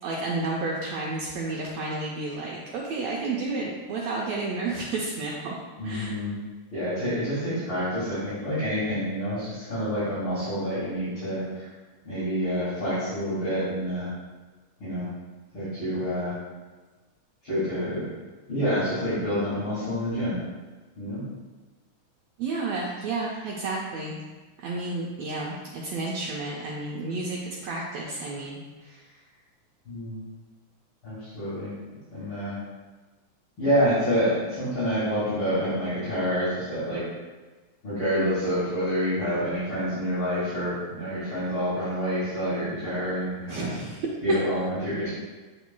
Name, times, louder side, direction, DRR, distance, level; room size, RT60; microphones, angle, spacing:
voice 1, 0.0-5.6 5.8-6.1 22.4-24.2 24.6-29.1 43.5-44.1, right 3 dB, 85° right, -3 dB, 1.5 m, -31 dB
voice 2, 5.8-6.4 6.7-11.7 12.0-14.1 14.8-15.1 15.5-16.3 17.4-18.1 18.5-20.4 21.0-21.2 29.9-30.2 31.0-31.7 32.1-32.5 33.6-37.0 37.8-43.7 44.2-45.1, equal, 40° left, -13 dB, 2.8 m, -27 dB
8.1 x 6.1 x 2.2 m, 1.3 s
omnidirectional pair, 3.8 m